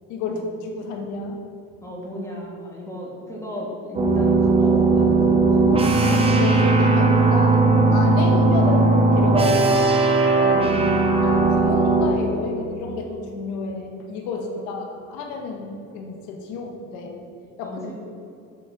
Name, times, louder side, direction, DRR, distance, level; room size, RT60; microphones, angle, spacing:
voice 1, 0.1-1.4 5.7-7.6 7.9-9.9 11.2-17.2 17.6-17.8, left 3 dB, 85° left, 2 dB, 1.6 m, -31 dB
voice 2, 1.8-5.4 10.3-10.9 14.3-14.7 17.6-17.9, left 1 dB, 10° left, -3 dB, 2.3 m, -35 dB
sound 1, 4.0-12.1, right 3 dB, 20° right, 1.0 m, -17 dB
8.5 x 6.6 x 6.0 m, 2.6 s
cardioid pair, 140°, 30 cm